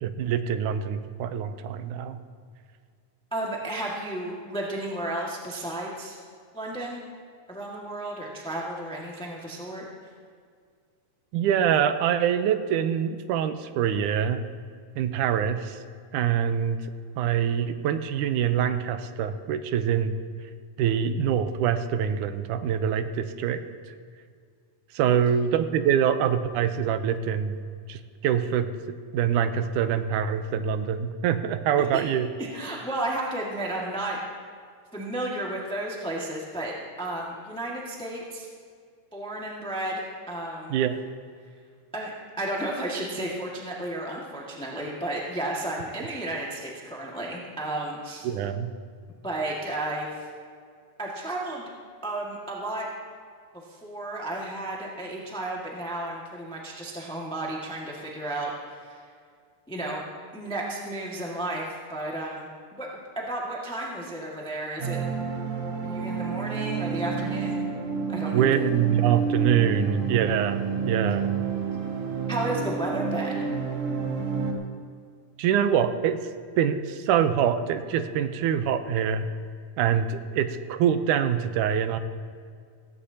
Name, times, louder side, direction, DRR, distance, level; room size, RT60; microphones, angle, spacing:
voice 1, 0.0-2.2 11.3-14.4 15.0-15.8 16.1-16.8 17.2-20.2 20.8-23.6 24.9-27.6 27.9-28.7 29.1-32.3 40.7-41.0 48.2-48.7 68.3-71.4 75.4-76.2 76.6-79.3 79.8-82.0, right 8 dB, 85° right, 9 dB, 2.2 m, -25 dB
voice 2, 3.3-6.2 6.5-7.0 7.5-9.8 25.0-25.1 31.8-32.0 32.4-34.2 34.9-36.7 37.0-38.5 39.1-40.7 41.9-48.3 49.2-50.1 51.0-51.7 52.0-52.9 53.7-59.0 59.7-60.0 60.3-62.9 63.1-65.0 65.8-67.6 68.1-68.5 72.3-73.5, right 1 dB, 5° left, -3 dB, 0.7 m, -33 dB
sound 1, 64.8-74.5, right 5 dB, 60° right, 2.5 m, -29 dB
17.5 x 16.5 x 2.8 m, 2.1 s
omnidirectional pair, 3.6 m